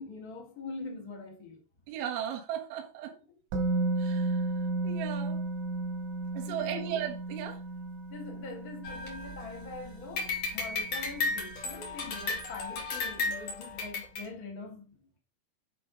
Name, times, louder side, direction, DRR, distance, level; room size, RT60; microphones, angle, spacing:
voice 1, 0.0-1.6 3.1-3.2 6.4-6.9 8.1-15.2, left 4 dB, 90° left, 0.8 m, -43 dB
voice 2, 1.9-3.1 4.0-4.4 4.8-5.4 6.3-7.6, right 10 dB, 70° right, 2.9 m, -36 dB
Musical instrument, 3.5-11.4 11.7-11.9, right 2 dB, 90° right, 4.2 m, -34 dB
sound 1, 8.8-9.7 10.2-14.2, left 3 dB, 45° left, 2.5 m, -34 dB
10.5 x 3.8 x 5.0 m
omnidirectional pair, 5.1 m